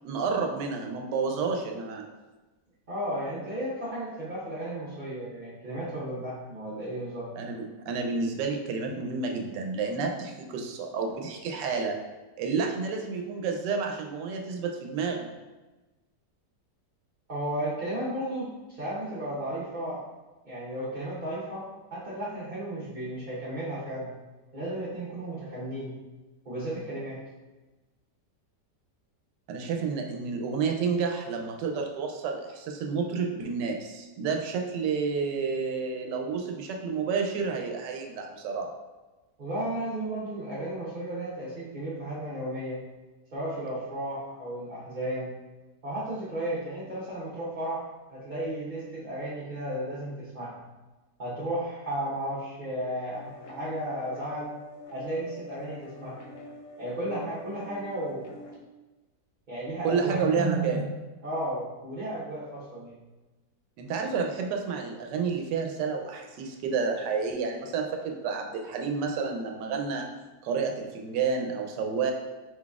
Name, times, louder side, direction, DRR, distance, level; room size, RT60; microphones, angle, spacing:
voice 1, 0.0-2.0 7.4-12.0 12.4-15.3 29.5-38.7 59.8-60.8 63.8-70.1 70.4-72.1, right 5 dB, 90° right, 2 dB, 1.2 m, -30 dB
voice 2, 2.9-7.3 17.3-18.5 18.8-20.0 20.4-24.1 24.5-26.0 26.4-27.2 39.4-42.8 43.3-45.3 45.8-47.8 48.1-50.5 51.2-54.6 54.9-56.2 56.8-58.3 59.5-60.8 61.2-63.0, right 1 dB, 35° right, -10 dB, 0.9 m, -34 dB
sound 1, 53.1-58.6, left 2 dB, 75° left, 0.7 m, -45 dB
4.5 x 3.9 x 2.3 m, 1.1 s
omnidirectional pair, 1.8 m